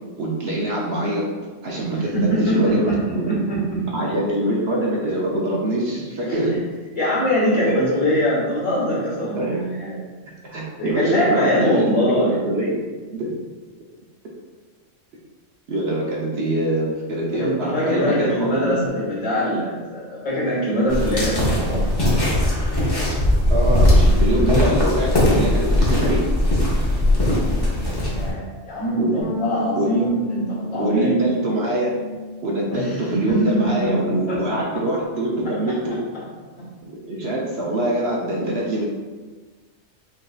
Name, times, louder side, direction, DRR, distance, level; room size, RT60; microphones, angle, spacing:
voice 1, 0.2-1.2 1.6-3.3 3.9-6.5 7.7-7.8 9.4-9.6 10.4-12.8 13.1-13.3 15.7-18.7 23.5-26.2 29.0-29.1 29.8-30.1 30.7-31.9 32.4-36.0 36.9-38.8, right 1 dB, 60° right, -3 dB, 0.8 m, -24 dB
voice 2, 1.9-4.0 6.3-6.4 6.9-10.0 10.8-12.4 17.3-21.8 27.7-31.2 32.7-34.6, equal, 75° left, -9 dB, 1.7 m, -23 dB
sound 1, 20.9-28.3, left 1 dB, 20° left, 0.8 m, -19 dB
sound 2, 29.2-33.8 34.0-35.5, left 3 dB, 5° right, 1.1 m, -33 dB
5.3 x 2.5 x 2.3 m, 1.4 s
omnidirectional pair, 1.3 m